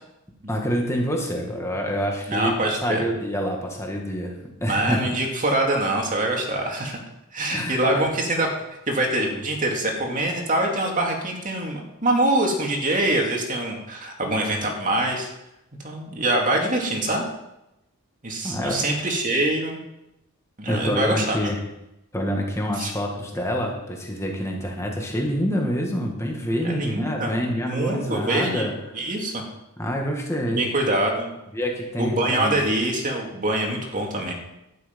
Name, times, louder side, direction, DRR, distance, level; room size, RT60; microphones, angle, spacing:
voice 1, 0.5-4.3 4.6-5.0 7.5-8.1 18.4-18.9 20.7-21.6 22.1-28.7 29.8-30.6 31.5-32.6, equal, 15° left, 1 dB, 1.7 m, -27 dB
voice 2, 2.3-3.0 4.7-7.0 7.3-8.5 8.9-15.3 15.8-17.3 18.2-19.8 20.6-21.4 22.8-22.9 26.6-27.3 27.7-28.7 28.9-29.4 30.5-31.3 32.0-34.3, right 1 dB, 35° right, 1 dB, 2.3 m, -24 dB
12.0 x 10.0 x 5.3 m, 0.89 s
head